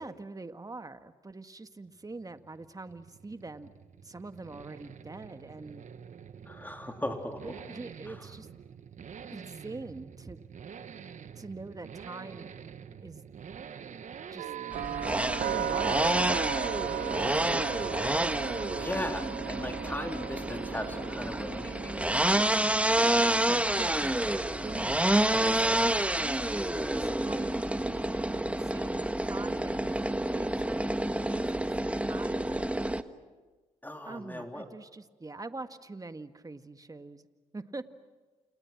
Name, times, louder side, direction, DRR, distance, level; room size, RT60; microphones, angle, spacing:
voice 1, 0.0-3.7 4.0-5.8 7.4-8.5 9.3-10.4 11.3-12.5 13.0-13.2 14.3-14.5 15.5-16.2 22.1-22.8 23.5-24.2 24.6-25.0 25.3-31.0 31.3-31.5 31.8-32.6 34.0-37.2 37.5-37.8, right 3 dB, 25° right, 9 dB, 1.8 m, -43 dB
sound 1, 1.9-19.9, right 7 dB, 55° right, 1.5 m, -48 dB
voice 2, 6.5-7.6 8.1-8.3 18.8-22.0 33.8-34.7, left 1 dB, 10° left, 3 dB, 3.7 m, -37 dB
sound 2, 14.4-28.3, right 11 dB, 75° right, 1.0 m, -38 dB
sound 3, 14.7-33.0, right 1 dB, 10° right, 1.5 m, -29 dB
29.5 x 29.0 x 6.1 m, 1.3 s
hypercardioid pair, 50°, 15 cm